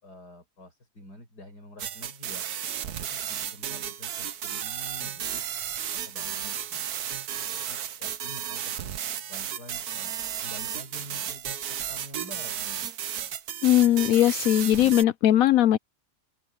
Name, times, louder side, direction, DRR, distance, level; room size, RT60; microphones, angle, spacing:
voice 1, 0.0-2.4 2.8-5.5 5.9-6.9 7.5-8.9 9.3-12.9, left 1 dB, 85° left, 8.1 m, -48 dB
sound 1, 1.8-15.0, right 9 dB, 70° right, 1.5 m, -33 dB
voice 2, 13.6-15.8, left 12 dB, 65° left, 1.0 m, -20 dB
open air
omnidirectional pair, 1.7 m